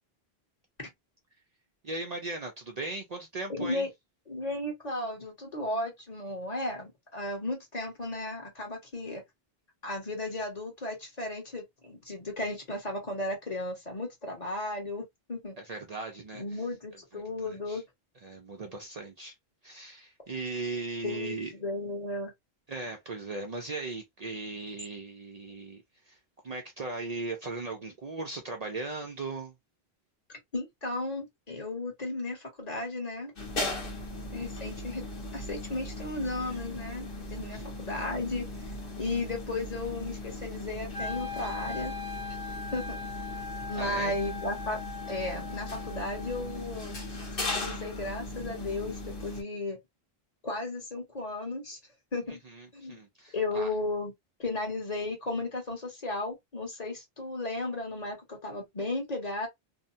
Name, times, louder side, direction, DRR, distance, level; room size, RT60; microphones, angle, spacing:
voice 1, 1.8-3.9 15.6-16.4 17.1-17.8 18.2-19.4 19.6-21.5 22.7-26.2 26.4-29.5 37.5-37.6 43.7-44.2 52.3-53.7, right 3 dB, 50° right, 0.6 m, -38 dB
voice 2, 3.5-3.9 4.3-9.2 9.8-15.6 16.3-17.8 21.0-22.3 30.3-33.3 34.3-35.0 35.3-38.5 39.0-41.9 42.3-42.4 42.7-43.0 43.7-44.8 45.1-47.0 47.4-49.8 50.4-51.8 52.1-52.4 52.7-53.0 53.3-54.1 54.4-59.5, left 2 dB, 40° left, 1.2 m, -35 dB
sound 1, 33.4-49.4, left 1 dB, 60° left, 1.2 m, -38 dB
Wind instrument woodwind instrument, 40.9-47.0, left 4 dB, 25° left, 0.8 m, -40 dB
2.7 x 2.2 x 2.6 m
omnidirectional pair, 1.0 m